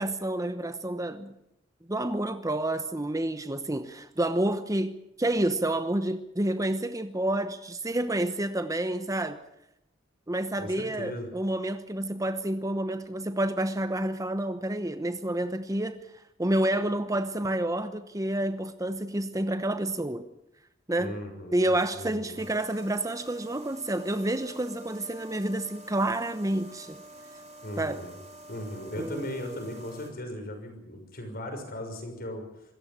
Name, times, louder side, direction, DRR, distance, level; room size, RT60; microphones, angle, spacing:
voice 1, 0.0-1.3 1.9-9.4 10.3-16.0 16.4-20.2 20.9-21.1 21.5-27.0 27.8-28.0 29.0-29.2, right 1 dB, 20° right, 10 dB, 0.9 m, -29 dB
voice 2, 10.6-11.3 21.0-22.4 27.6-28.1 28.5-32.4, left 1 dB, 50° left, 5 dB, 6.1 m, -37 dB
sound 1, 22.3-30.1, right 1 dB, 40° right, 4.3 m, -48 dB
26.0 x 14.0 x 8.8 m, 0.83 s
head